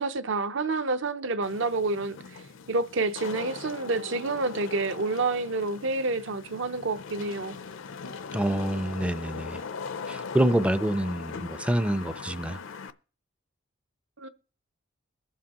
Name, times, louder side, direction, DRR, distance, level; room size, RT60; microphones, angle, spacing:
voice 1, 0.0-2.2 2.7-7.6 14.2-14.3, right 3 dB, 60° right, 0.7 m, -28 dB
Wind / Rain, 1.4-12.9, left 5 dB, 65° left, 0.5 m, -40 dB
voice 2, 8.3-9.6 10.1-12.6, right 1 dB, 5° right, 0.4 m, -26 dB
22.5 x 7.5 x 2.9 m
head